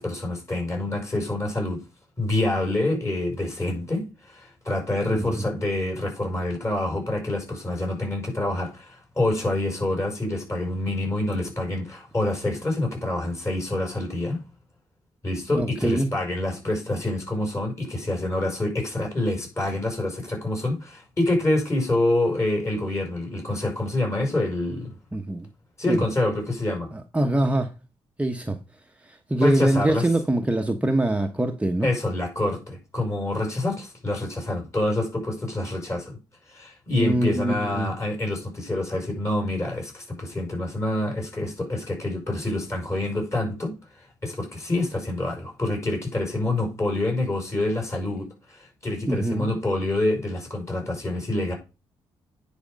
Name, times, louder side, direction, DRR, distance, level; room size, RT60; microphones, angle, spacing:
voice 1, 0.0-1.8 2.2-14.4 15.2-24.9 25.8-26.9 29.4-30.1 31.8-36.2 36.5-43.8 44.2-51.5, left 1 dB, 30° left, 5.8 m, -27 dB
voice 2, 15.5-16.1 25.1-25.5 25.9-26.0 26.9-27.7 28.2-28.6 29.1-31.9 36.9-37.9 49.1-49.5, right 1 dB, 15° right, 1.0 m, -24 dB
9.7 x 5.1 x 5.2 m
cardioid pair, 80°, 10 cm